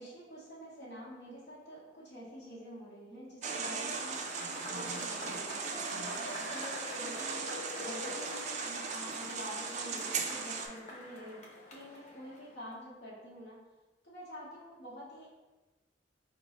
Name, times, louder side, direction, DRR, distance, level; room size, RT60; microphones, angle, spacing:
voice 1, 0.0-4.2 4.7-13.6 14.0-15.3, equal, 60° left, -8 dB, 1.1 m, -48 dB
sound 1, 3.4-10.7, right 5 dB, 40° right, 0.4 m, -38 dB
Cheering / Applause / Crowd, 4.0-12.7, left 1 dB, 40° left, 0.7 m, -46 dB
5.1 x 2.3 x 2.9 m, 1.2 s
head